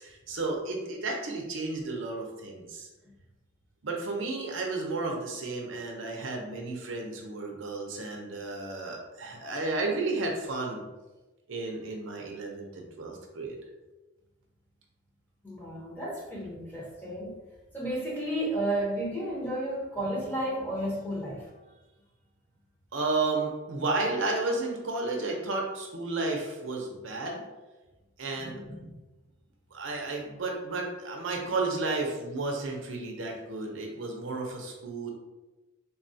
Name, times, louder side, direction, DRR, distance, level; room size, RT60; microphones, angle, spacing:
voice 1, 0.0-2.9 3.8-10.8 11.5-13.6 22.9-27.4 28.2-28.6 29.7-35.1, right 3 dB, 75° right, 1 dB, 0.6 m, -32 dB
voice 2, 15.4-17.4 17.7-21.5 28.4-28.9, right 1 dB, 10° left, -6 dB, 0.8 m, -33 dB
3.6 x 2.3 x 2.6 m, 1.1 s
head